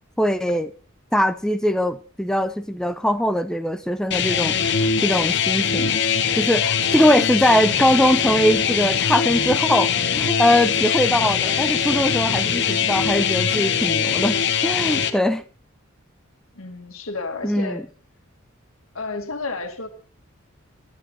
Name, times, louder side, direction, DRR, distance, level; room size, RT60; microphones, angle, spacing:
voice 1, 0.2-0.7 1.1-6.0 6.4-15.4 17.4-17.8, equal, 5° left, 0.6 m, -21 dB
sound 1, 4.1-15.1, left 7 dB, 60° left, 1.1 m, -22 dB
voice 2, 16.5-17.8 18.9-19.9, left 3 dB, 90° left, 2.0 m, -31 dB
12.0 x 11.5 x 4.1 m
head